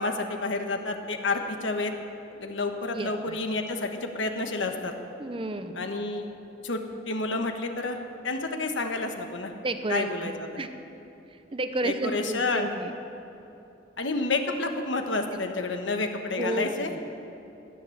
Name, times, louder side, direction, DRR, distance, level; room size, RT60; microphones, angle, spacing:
voice 1, 0.0-1.9 2.4-4.9 5.7-6.3 6.6-6.8 7.1-8.0 8.2-9.5 9.9-10.6 11.8-12.7 14.0-16.9, left 3 dB, 85° left, 5 dB, 1.3 m, -29 dB
voice 2, 2.9-3.4 5.2-5.8 9.5-10.7 11.5-12.9 15.3-15.4 16.3-17.0, right 2 dB, 30° right, 9 dB, 0.7 m, -32 dB
15.5 x 10.5 x 7.2 m, 2.9 s
head